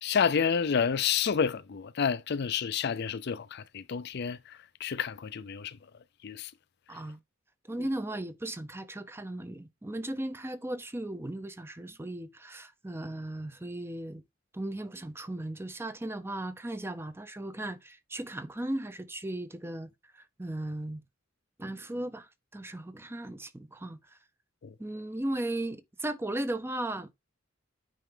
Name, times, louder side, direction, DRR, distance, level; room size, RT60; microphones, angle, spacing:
voice 1, 0.0-5.8 6.2-6.5 7.8-7.9 24.6-24.7, left 7 dB, 55° left, 0.5 m, -29 dB
voice 2, 6.9-7.2 7.7-14.2 14.5-21.0 21.6-24.2 24.8-27.1, right 1 dB, 10° right, 0.6 m, -36 dB
9.2 x 4.4 x 3.7 m
head